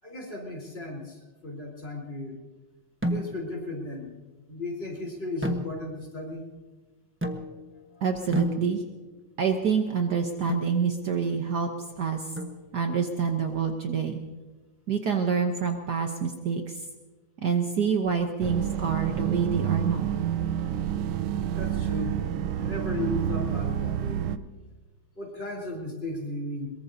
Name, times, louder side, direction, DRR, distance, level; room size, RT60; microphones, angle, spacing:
voice 1, 0.0-2.4 3.1-4.2 4.5-6.4 7.9-8.0 21.6-22.2 22.6-24.3 25.2-26.7, left 2 dB, 25° left, -1 dB, 4.2 m, -35 dB
sound 1, 3.0-3.6 5.4-6.2 7.2-7.8 8.3-9.1 10.5-10.8 12.4-13.0, equal, 10° right, 0.6 m, -32 dB
voice 2, 8.0-8.8 9.4-11.7 12.0-12.2 12.7-14.2 14.9-16.8 17.4-20.1, right 6 dB, 60° right, 4 dB, 1.4 m, -27 dB
sound 2, 18.4-24.4, right 10 dB, 80° right, 1.5 m, -29 dB
23.0 x 22.5 x 2.8 m, 1.3 s
omnidirectional pair, 2.3 m